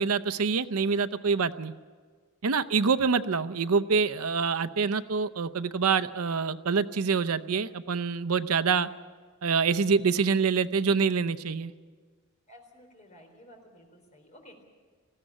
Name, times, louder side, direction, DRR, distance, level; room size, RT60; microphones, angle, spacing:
voice 1, 0.0-1.7 2.4-8.9 9.4-11.7, right 5 dB, 80° right, 13 dB, 0.6 m, -26 dB
voice 2, 12.5-14.6, equal, 35° left, 2 dB, 3.9 m, -53 dB
20.0 x 15.5 x 9.9 m, 1.5 s
head